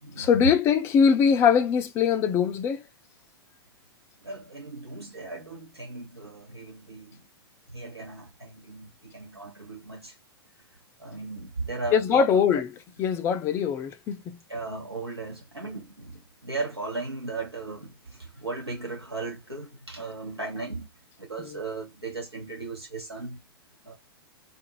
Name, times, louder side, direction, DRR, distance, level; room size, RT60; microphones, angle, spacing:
voice 1, 0.2-2.8 11.9-12.7 13.0-14.4 21.4-21.6, left 7 dB, 20° left, 0.4 m, -22 dB
voice 2, 4.2-7.2 7.7-10.1 11.0-12.2 14.5-20.9 21.2-23.4 23.8-23.9, right 3 dB, 85° right, 1.1 m, -36 dB
2.5 x 2.5 x 2.9 m
figure-of-eight pair, 100°, 13 cm